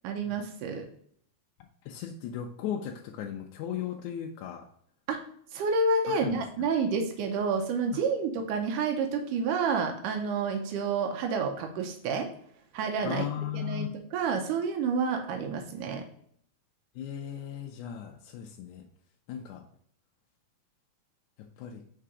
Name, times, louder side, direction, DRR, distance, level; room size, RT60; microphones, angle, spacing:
voice 1, 0.0-0.9 5.1-5.2 5.5-12.3 12.7-16.0, right 4 dB, 90° right, 3 dB, 2.4 m, -29 dB
voice 2, 1.9-4.7 6.1-6.4 13.0-13.9 17.0-18.9 19.3-19.6 21.6-21.8, left 10 dB, 80° left, 2 dB, 2.0 m, -36 dB
5.7 x 3.8 x 4.8 m, 0.64 s
omnidirectional pair, 3.5 m